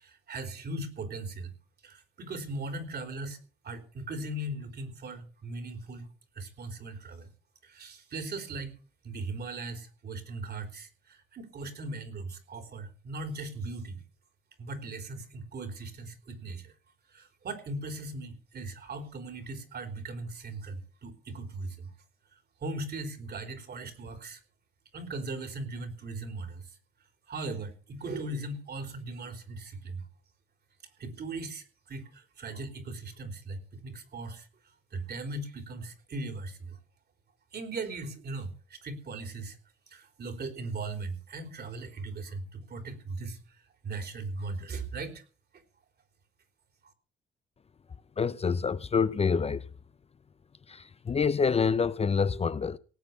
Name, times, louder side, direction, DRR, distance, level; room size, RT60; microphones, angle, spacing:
voice 1, 0.0-1.5 1.8-3.4 3.6-6.1 6.4-7.3 7.6-8.7 9.0-14.0 14.6-16.7 17.1-21.9 22.6-24.4 24.9-26.7 27.3-30.1 31.0-34.5 34.9-36.8 37.5-39.6 39.9-43.6 43.8-45.2 46.8-46.9, right 2 dB, 55° right, 3.6 m, -38 dB
voice 2, 48.2-49.7 50.7-52.8, left 5 dB, 30° left, 0.7 m, -27 dB
18.0 x 8.0 x 7.0 m
cardioid pair, 90°, 20 cm